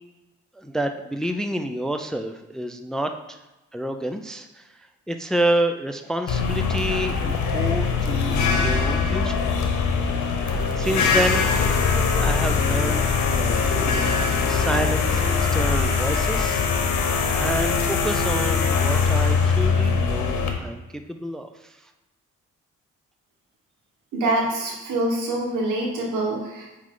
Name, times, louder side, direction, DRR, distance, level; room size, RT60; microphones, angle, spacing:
voice 1, 0.6-3.4 3.7-4.7 5.1-9.4 10.3-11.5 12.2-16.6 17.3-21.8, right 1 dB, ahead, 7 dB, 0.4 m, -29 dB
sound 1, 6.3-20.5, left 5 dB, 75° left, 1.0 m, -22 dB
voice 2, 24.1-26.8, right 1 dB, 85° right, -1 dB, 1.6 m, -25 dB
8.4 x 3.3 x 3.8 m, 1.0 s
cardioid pair, 90°, 30 cm